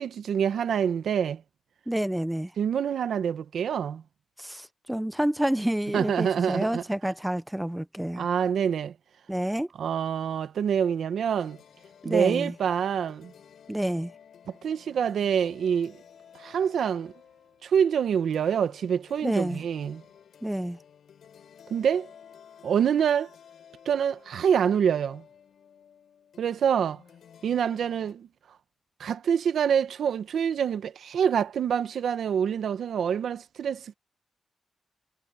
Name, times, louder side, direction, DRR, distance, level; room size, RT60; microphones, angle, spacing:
voice 1, 0.0-1.4 2.6-4.0 5.9-6.8 8.2-8.9 9.8-11.6 12.0-13.3 14.6-16.0 16.3-17.1 17.6-20.0 21.7-22.1 22.6-23.3 23.8-25.2 26.4-27.0 27.4-28.3 29.0-33.9, right 8 dB, 85° right, 1.2 m, -26 dB
voice 2, 1.9-2.5 4.4-8.3 9.3-9.7 12.0-12.5 13.7-14.1 19.2-19.6 20.4-20.8, right 1 dB, 5° right, 0.7 m, -29 dB
sound 1, 11.4-28.1, left 8 dB, 80° left, 5.3 m, -54 dB
cardioid pair, 90°, 0 cm